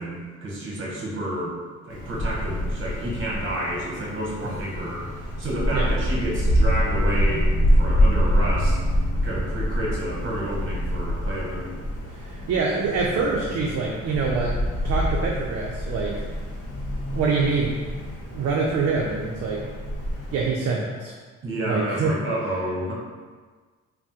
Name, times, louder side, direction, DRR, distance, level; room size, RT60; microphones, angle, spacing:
voice 1, 0.0-1.5 1.8-7.5 7.8-8.8 9.2-11.7 21.4-22.9, right 1 dB, 40° right, -4 dB, 0.9 m, -30 dB
Wind, 1.9-20.5, equal, 75° left, 0.8 m, -26 dB
voice 2, 12.2-14.5 14.8-16.2 17.1-17.8 18.3-19.6 20.3-21.1 21.7-22.2, right 4 dB, 55° right, -2 dB, 0.4 m, -25 dB
3.4 x 2.1 x 2.8 m, 1.4 s
cardioid pair, 90°, 30 cm